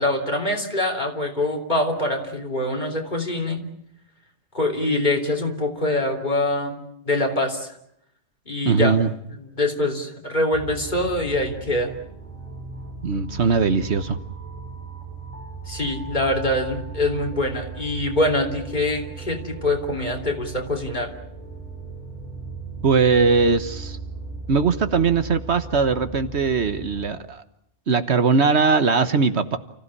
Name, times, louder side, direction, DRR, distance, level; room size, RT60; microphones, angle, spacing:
voice 1, 0.0-3.6 4.5-6.8 7.1-7.7 8.5-9.0 9.3-11.9 15.7-21.1, left 1 dB, 40° left, 3 dB, 3.6 m, -24 dB
voice 2, 8.6-9.1 13.0-14.2 22.8-24.0 24.5-27.4 27.9-29.6, right 5 dB, 65° right, 10 dB, 1.4 m, -20 dB
sound 1, 10.5-27.1, right 3 dB, 5° left, 6.1 m, -37 dB
29.5 x 15.5 x 9.9 m, 0.75 s
omnidirectional pair, 1.2 m